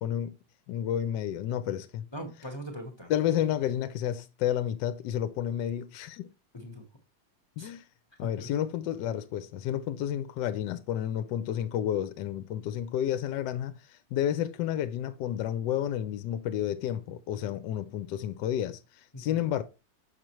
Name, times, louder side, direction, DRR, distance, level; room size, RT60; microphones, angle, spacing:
voice 1, 0.0-0.4 0.7-2.1 3.1-6.3 7.6-7.8 8.2-19.6, left 10 dB, 75° left, 1.1 m, -31 dB
voice 2, 2.1-3.1 6.5-6.8 7.6-7.7 8.2-8.5 19.1-19.5, equal, 25° left, 0.6 m, -41 dB
6.5 x 6.1 x 3.0 m
omnidirectional pair, 2.1 m